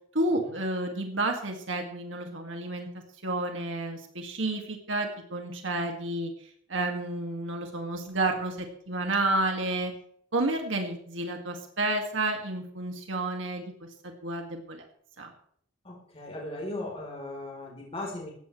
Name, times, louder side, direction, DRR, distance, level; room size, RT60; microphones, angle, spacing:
voice 1, 0.1-2.9 3.2-6.3 6.7-9.9 10.3-13.7 14.0-14.8 15.2-15.3, right 2 dB, 70° right, 3 dB, 2.4 m, -30 dB
voice 2, 15.8-18.3, left 1 dB, 30° left, -2 dB, 4.1 m, -38 dB
18.0 x 15.0 x 3.4 m, 0.65 s
head